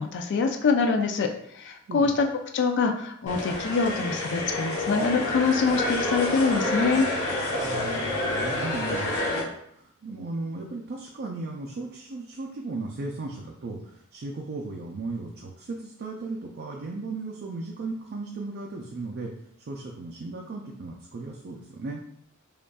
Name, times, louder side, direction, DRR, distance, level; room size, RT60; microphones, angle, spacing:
voice 1, 0.0-2.3 2.5-7.1, left 4 dB, 55° left, 4 dB, 0.4 m, -25 dB
sound 1, 3.3-9.4, left 1 dB, 75° left, 1.3 m, -28 dB
voice 2, 7.6-19.3 19.6-22.0, right 3 dB, 50° right, -1 dB, 0.4 m, -36 dB
5.0 x 2.4 x 2.3 m, 0.70 s
head